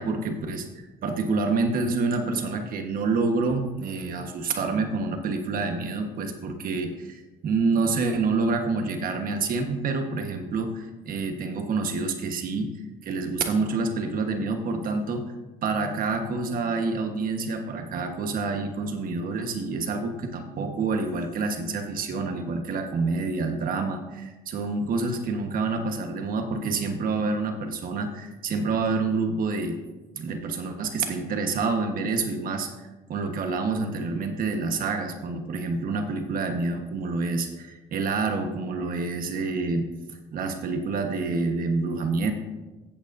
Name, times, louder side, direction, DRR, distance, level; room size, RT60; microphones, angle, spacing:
voice 1, 0.0-12.7 13.0-15.3 15.6-29.8 30.2-39.9 40.3-42.3, right 3 dB, 55° right, 5 dB, 1.4 m, -27 dB
14.0 x 8.2 x 2.7 m, 1.1 s
cardioid pair, 110°, 17 cm